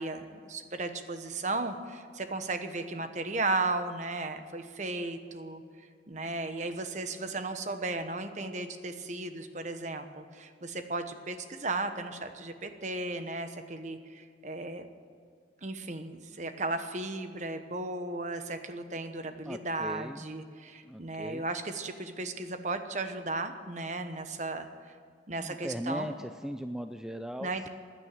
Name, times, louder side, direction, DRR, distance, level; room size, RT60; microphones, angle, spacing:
voice 1, 0.0-5.6 6.1-14.8 15.6-24.7 25.3-26.1 27.4-27.7, right 2 dB, 40° right, 8 dB, 1.1 m, -35 dB
voice 2, 19.5-20.2 20.8-21.4 25.4-27.7, equal, 5° right, 7 dB, 0.4 m, -38 dB
15.5 x 9.8 x 9.1 m, 2.1 s
head